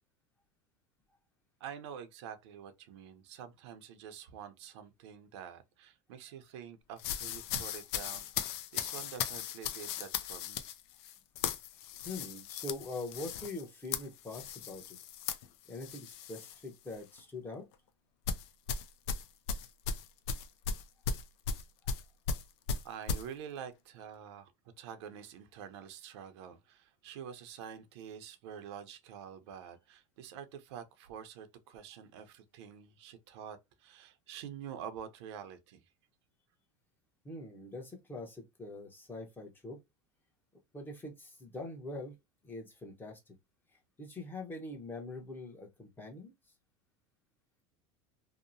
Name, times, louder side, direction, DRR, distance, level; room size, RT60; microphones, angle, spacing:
voice 1, 1.6-10.6 22.8-24.5 24.8-35.8, right 8 dB, 80° right, 0.6 m, -47 dB
sound 1, 7.0-16.6 16.9-17.2 18.3-23.3, left 6 dB, 75° left, 0.5 m, -37 dB
voice 2, 12.0-15.0 15.7-17.7 37.2-39.8 40.7-42.1 42.4-43.2 44.0-46.3, left 2 dB, 15° left, 0.8 m, -43 dB
2.8 x 2.0 x 2.5 m
supercardioid pair, 120°, 14 cm